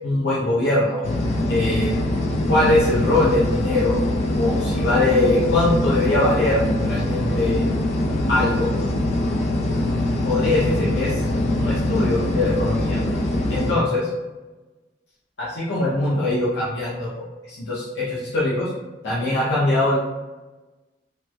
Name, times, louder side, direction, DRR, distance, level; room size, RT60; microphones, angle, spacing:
voice 1, 0.0-1.0 1.5-2.0 2.5-4.0 4.4-7.7 8.3-8.7 10.2-11.2 11.5-13.0 13.5-14.1 15.4-18.7 19.0-20.0, left 2 dB, 90° left, -8 dB, 0.7 m, -22 dB
sound 1, 1.0-13.7, left 1 dB, 40° left, 0.3 m, -23 dB
3.2 x 2.0 x 3.2 m, 1.2 s
head